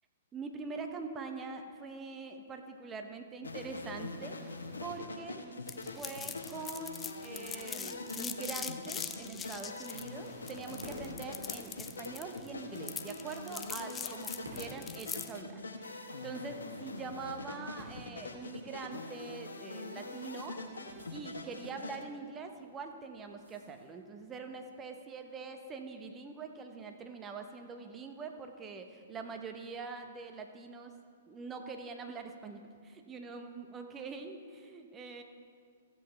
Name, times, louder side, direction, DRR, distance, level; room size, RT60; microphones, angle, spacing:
voice 1, 0.3-5.4 6.0-20.6 21.1-31.0 31.3-35.2, right 4 dB, 20° right, 5 dB, 1.0 m, -44 dB
sound 1, 3.4-22.0, left 2 dB, 80° left, 1.1 m, -44 dB
sound 2, 5.7-15.4, left 7 dB, 15° left, 0.5 m, -42 dB
sound 3, 10.7-24.3, equal, 85° right, 3.1 m, -55 dB
15.5 x 8.1 x 3.3 m, 2.2 s
figure-of-eight pair, 115°, 0 cm